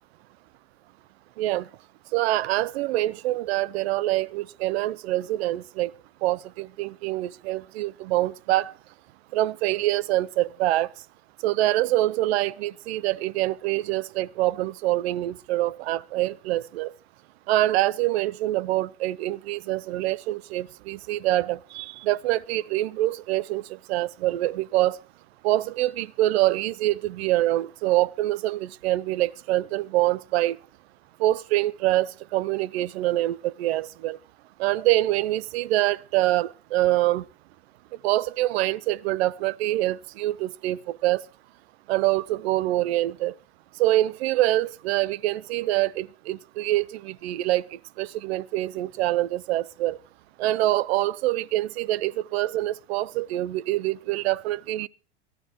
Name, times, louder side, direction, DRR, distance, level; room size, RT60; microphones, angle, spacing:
voice 1, 1.4-1.7 2.1-5.9 6.2-8.7 9.3-10.9 11.4-16.9 17.5-25.0 25.4-30.6 31.2-34.2 34.6-37.3 38.0-41.2 41.9-43.3 43.8-50.0 50.4-54.9, right 16 dB, 70° right, 0.6 m, -25 dB
22.5 x 12.5 x 3.0 m
hypercardioid pair, 105°, 33 cm